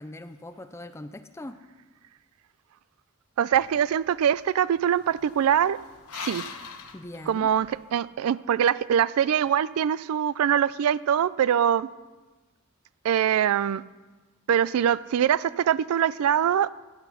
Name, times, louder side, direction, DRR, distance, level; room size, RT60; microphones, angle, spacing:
voice 1, 0.0-1.6 6.9-7.5, left 1 dB, 10° left, 10 dB, 0.4 m, -41 dB
voice 2, 3.4-5.8 6.1-6.4 7.3-11.9 13.0-13.8 14.5-16.7, right 9 dB, 85° right, 19 dB, 0.3 m, -23 dB
sound 1, 3.5-7.9, left 6 dB, 85° left, 1.0 m, -43 dB
15.5 x 8.2 x 5.6 m, 1.2 s
head